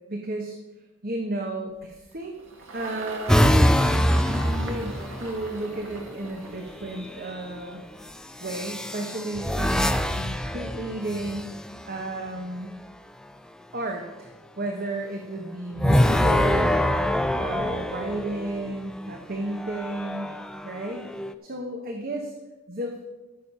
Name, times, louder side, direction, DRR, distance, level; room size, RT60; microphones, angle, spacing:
voice 1, 0.1-0.6 1.0-2.4 2.7-3.6 4.2-7.8 8.4-12.8 13.7-14.3 14.6-16.9 17.4-20.3 20.6-21.0 21.4-22.3 22.7-22.9, right 2 dB, 45° right, 2 dB, 1.2 m, -33 dB
Engine, 1.8-8.4, right 2 dB, 70° right, 1.9 m, -41 dB
sound 1, 3.3-5.5 6.8-7.3 8.4-11.8 15.8-18.7 19.5-21.3, equal, 5° left, 0.4 m, -24 dB
14.5 x 6.7 x 5.5 m, 1.1 s
head